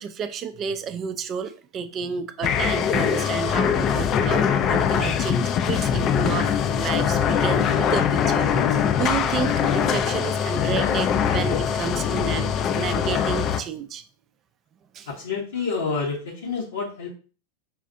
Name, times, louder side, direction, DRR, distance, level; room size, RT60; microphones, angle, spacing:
voice 1, 0.0-12.5 12.8-14.0 14.9-15.1, right 7 dB, 30° right, 11 dB, 0.4 m, -31 dB
sound 1, 2.4-13.6, left 8 dB, 30° left, 0.4 m, -22 dB
voice 2, 15.2-17.1, left 4 dB, 65° left, -3 dB, 0.8 m, -28 dB
5.5 x 2.4 x 2.6 m, 0.38 s
figure-of-eight pair, 90°, 0 cm